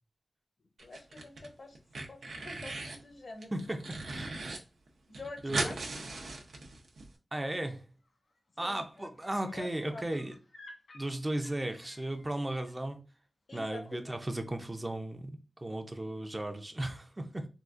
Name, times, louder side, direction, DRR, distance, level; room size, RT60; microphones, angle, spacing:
voice 1, 0.8-3.5 5.1-6.2 8.6-9.1 9.5-10.3 13.5-14.2, left 2 dB, 55° left, 0.6 m, -48 dB
sound 1, 0.8-1.5 1.8-3.0 3.4-4.6 4.9-5.0 5.1-7.1, right 2 dB, 90° right, 0.6 m, -38 dB
voice 2, 3.5-4.3 5.4-5.8 7.3-7.8 8.6-10.3 10.9-13.0 13.5-17.5, right 1 dB, 20° right, 0.4 m, -36 dB
sound 2, 8.0-8.4 8.7-12.7 14.4-14.5, left 2 dB, 80° left, 1.5 m, -56 dB
3.7 x 2.4 x 2.4 m
wide cardioid pair, 105°, 0 cm